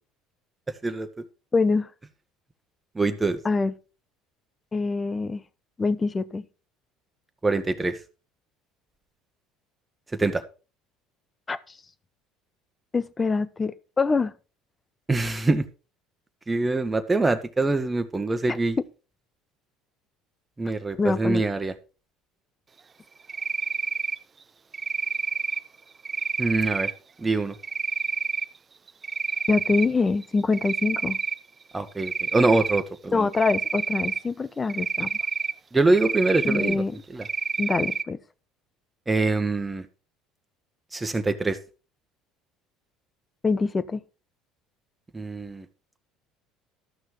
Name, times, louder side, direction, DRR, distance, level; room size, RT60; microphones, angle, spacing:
voice 1, 1.5-1.9 3.4-3.7 4.7-5.4 5.8-6.4 11.5-11.6 12.9-14.3 21.0-21.5 29.5-31.2 33.1-35.1 36.4-36.9 37.6-38.2 43.4-44.0, left 4 dB, 25° left, 0.9 m, -24 dB
voice 2, 2.9-3.4 7.4-8.0 10.2-10.4 15.1-15.6 16.5-18.8 20.6-21.7 26.4-26.9 27.2-27.5 31.7-33.3 35.7-36.8 37.1-37.3 39.1-39.8 40.9-41.6 45.1-45.6, right 3 dB, 15° right, 1.5 m, -24 dB
Cricket, 23.3-24.2 24.7-25.6 26.0-26.9 27.6-28.4 28.9-29.9 30.2-31.4 32.0-32.8 33.3-34.2 34.7-35.5 35.9-36.7 37.2-38.0, right 5 dB, 35° right, 0.6 m, -28 dB
13.0 x 6.2 x 4.8 m
hypercardioid pair, 70°, 0 cm